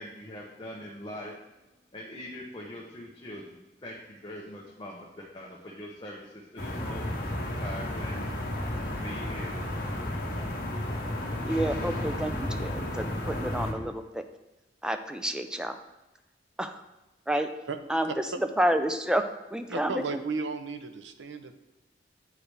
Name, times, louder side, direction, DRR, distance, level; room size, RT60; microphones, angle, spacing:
voice 1, 0.0-1.4 1.9-7.2 7.4-8.3 9.0-9.6, left 1 dB, 25° left, -3 dB, 0.7 m, -42 dB
sound 1, 6.6-13.7, left 1 dB, 55° left, 1.1 m, -32 dB
voice 2, 11.5-14.3 14.8-15.8 16.6-16.8 17.3-17.5 17.9-19.2 19.5-20.2, right 1 dB, 5° right, 8 dB, 0.3 m, -29 dB
voice 3, 19.7-21.5, right 4 dB, 85° right, 8 dB, 0.6 m, -34 dB
8.5 x 4.7 x 3.3 m, 1.0 s
head